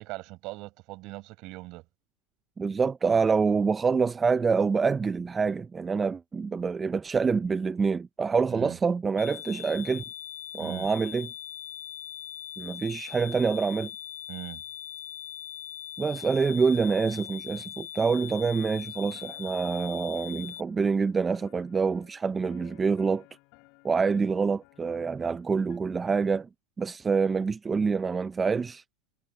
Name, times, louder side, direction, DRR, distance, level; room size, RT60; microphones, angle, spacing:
voice 1, 0.0-1.8 8.5-8.8 10.6-10.9 14.3-14.6, right 22 dB, 50° right, 7.2 m, -40 dB
voice 2, 2.6-10.0 10.5-11.3 12.6-13.9 16.0-23.2 23.8-26.5 26.8-28.8, right 5 dB, 15° right, 0.5 m, -26 dB
sound 1, 9.2-20.6, left 11 dB, 80° left, 1.5 m, -41 dB
sound 2, 18.1-25.8, left 30 dB, 55° left, 7.7 m, -58 dB
supercardioid pair, 130°, 0 cm